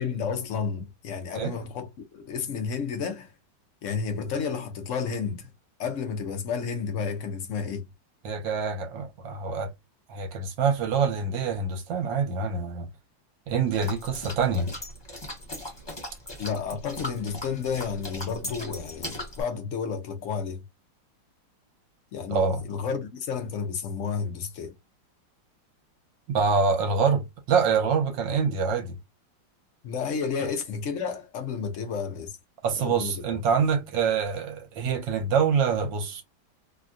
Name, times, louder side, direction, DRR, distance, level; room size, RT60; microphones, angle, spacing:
voice 1, 0.0-3.3 3.8-5.5 5.8-7.8 16.4-20.6 22.1-24.7 29.8-32.3 32.8-33.4, left 6 dB, 70° left, 0.7 m, -31 dB
voice 2, 8.2-9.7 10.1-12.9 13.5-14.7 22.3-22.6 26.3-29.0 32.6-36.2, right 5 dB, 75° right, 1.6 m, -25 dB
sound 1, 13.7-19.4, left 1 dB, 25° left, 0.6 m, -39 dB
3.4 x 2.2 x 2.4 m
omnidirectional pair, 2.1 m